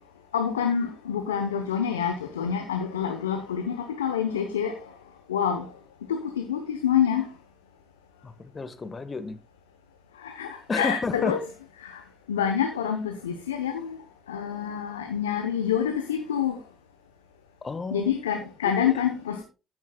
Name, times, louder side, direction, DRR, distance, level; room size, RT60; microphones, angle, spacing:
voice 1, 0.3-4.7 5.3-5.7 6.1-7.3 10.2-11.4 11.8-12.0 12.3-14.0 14.3-16.6 17.9-19.4, left 8 dB, 85° left, 0.9 m, -27 dB
voice 2, 8.2-9.4 10.7-11.3 17.6-18.1 18.6-18.9, left 4 dB, 35° left, 1.5 m, -31 dB
14.0 x 8.0 x 2.3 m
hypercardioid pair, 45°, 0 cm